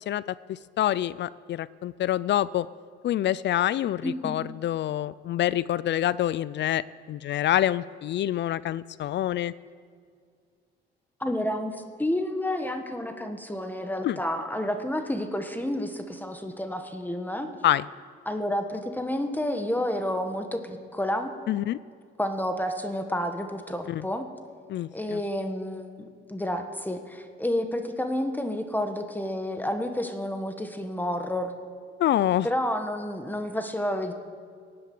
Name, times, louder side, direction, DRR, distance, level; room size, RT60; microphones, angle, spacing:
voice 1, 0.1-2.7 3.0-9.5 14.0-14.2 17.6-17.9 21.5-21.8 23.9-24.0 24.7-25.2 32.0-32.5, left 12 dB, 65° left, 19 dB, 0.4 m, -26 dB
voice 2, 4.0-4.4 11.2-17.5 18.2-21.3 22.2-24.3 24.9-31.5 32.4-34.1, left 1 dB, 10° left, 6 dB, 1.4 m, -30 dB
16.5 x 7.9 x 9.4 m, 2.1 s
cardioid pair, 90°, 20 cm